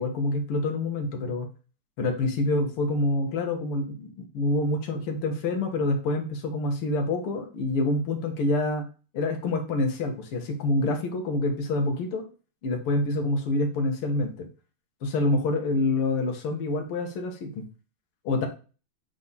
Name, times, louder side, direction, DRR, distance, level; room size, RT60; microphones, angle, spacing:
voice 1, 0.0-1.5 2.0-8.9 9.1-12.3 12.6-14.5 15.0-17.6 18.2-18.5, left 2 dB, 90° left, 3 dB, 2.1 m, -27 dB
7.2 x 3.8 x 4.0 m, 0.34 s
omnidirectional pair, 2.4 m